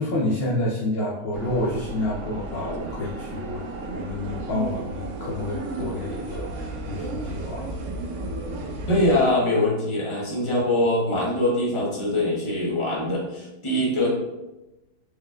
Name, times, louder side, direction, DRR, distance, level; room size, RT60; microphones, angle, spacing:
voice 1, 0.0-3.6 3.9-7.7 8.1-8.6, left 1 dB, 65° left, -4 dB, 0.6 m, -29 dB
sound 1, 1.3-9.3, right 2 dB, 65° right, 0.8 m, -33 dB
voice 2, 8.9-14.1, left 1 dB, 25° left, -5 dB, 0.9 m, -23 dB
4.7 x 3.2 x 2.3 m, 0.99 s
omnidirectional pair, 1.7 m